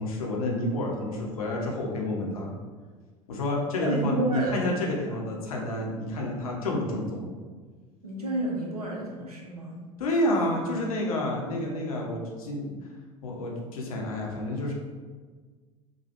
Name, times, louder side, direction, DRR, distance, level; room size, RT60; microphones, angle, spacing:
voice 1, 0.0-2.5 3.3-7.3 10.0-12.9 13.2-14.7, left 1 dB, 70° left, -1 dB, 0.6 m, -29 dB
voice 2, 3.8-4.7 8.0-9.8, right 1 dB, 85° right, -2 dB, 0.6 m, -30 dB
3.0 x 2.2 x 2.9 m, 1.5 s
figure-of-eight pair, 75°, 19 cm